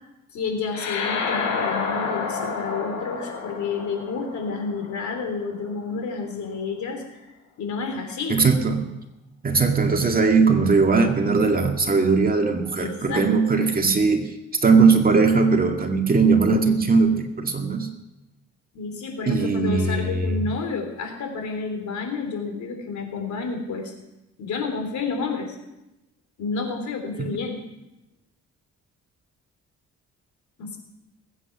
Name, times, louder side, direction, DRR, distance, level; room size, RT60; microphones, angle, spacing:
voice 1, 0.3-7.2 7.6-8.4 12.8-13.6 18.7-23.9 24.4-25.6 26.4-27.6 30.6-30.8, left 4 dB, 70° left, 4 dB, 3.6 m, -30 dB
Cinematic Swoosh, 0.7-5.5, left 5 dB, 85° left, 3.4 m, -29 dB
voice 2, 8.3-8.8 9.4-14.3 14.6-17.9 19.3-20.4, right 4 dB, 30° right, 3 dB, 2.1 m, -19 dB
20.5 x 8.9 x 5.9 m, 0.94 s
cardioid pair, 90°, 30 cm